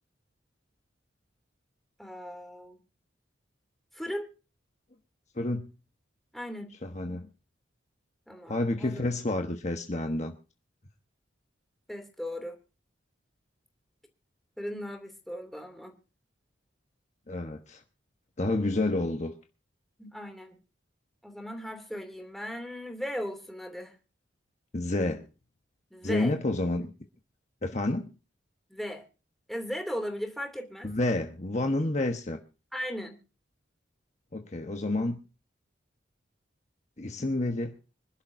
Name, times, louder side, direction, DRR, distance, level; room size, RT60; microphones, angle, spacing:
voice 1, 2.0-2.8 3.9-4.3 6.3-6.7 8.3-9.0 11.9-12.6 14.6-15.9 20.0-20.6 21.2-24.0 25.9-26.4 28.7-29.0 29.5-30.9 32.7-33.2, equal, ahead, 2.8 m, -37 dB
voice 2, 5.4-5.7 6.8-7.2 8.5-10.3 17.3-17.8 18.4-19.3 24.7-25.2 26.0-26.9 27.6-28.1 30.8-32.4 34.3-35.2 37.0-37.7, left 2 dB, 35° left, 1.2 m, -29 dB
26.0 x 12.0 x 2.7 m
head